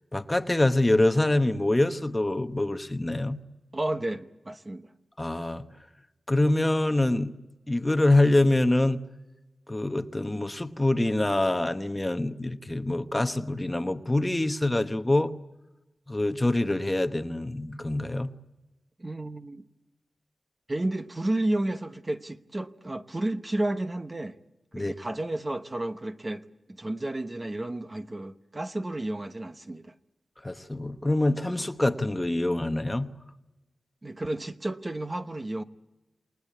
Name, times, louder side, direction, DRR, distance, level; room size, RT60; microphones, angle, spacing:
voice 1, 0.1-3.4 5.2-5.6 6.3-7.3 7.7-9.0 9.7-15.3 16.1-18.3 24.7-24.9 30.4-33.1, left 2 dB, 15° left, 1.0 m, -25 dB
voice 2, 3.7-4.9 19.0-19.6 20.7-24.4 24.7-26.4 26.7-29.9 34.0-35.6, right 1 dB, 25° right, 0.9 m, -31 dB
29.0 x 19.5 x 8.4 m
wide cardioid pair, 140°, 0 cm